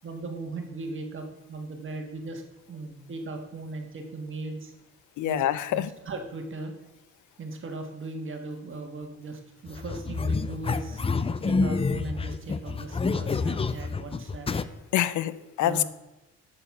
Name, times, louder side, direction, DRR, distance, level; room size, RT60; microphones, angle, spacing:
voice 1, 0.0-2.4 2.7-4.7 5.2-5.4 5.7-6.7 7.4-11.0 11.4-14.5 15.4-15.8, right 3 dB, 40° right, 4 dB, 1.6 m, -38 dB
voice 2, 5.2-5.9 14.9-15.3 15.6-15.8, left 12 dB, 75° left, 16 dB, 0.5 m, -25 dB
sound 1, 9.7-14.6, left 4 dB, 20° left, 0.4 m, -28 dB
6.9 x 6.7 x 5.4 m, 1.0 s
cardioid pair, 90°, 30 cm